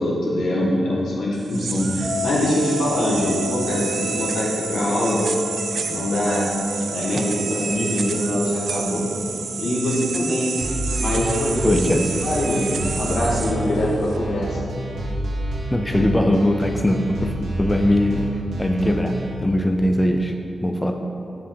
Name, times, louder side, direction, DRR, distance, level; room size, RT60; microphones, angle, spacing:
voice 1, 0.0-5.2 5.7-6.5 6.9-9.1 9.6-10.6 11.0-11.9 12.2-14.6, left 1 dB, 85° left, -4 dB, 1.3 m, -23 dB
sound 1, 1.3-14.2, right 5 dB, 70° right, 0.3 m, -30 dB
sound 2, 2.0-12.9, left 5 dB, 15° right, 1.3 m, -37 dB
sound 3, 10.6-19.3, right 1 dB, 85° right, 0.9 m, -29 dB
voice 2, 11.6-12.0 15.7-20.3 20.6-21.0, left 1 dB, 15° left, 4 dB, 0.4 m, -21 dB
7.3 x 4.6 x 3.7 m, 2.7 s
wide cardioid pair, 95°, 0 cm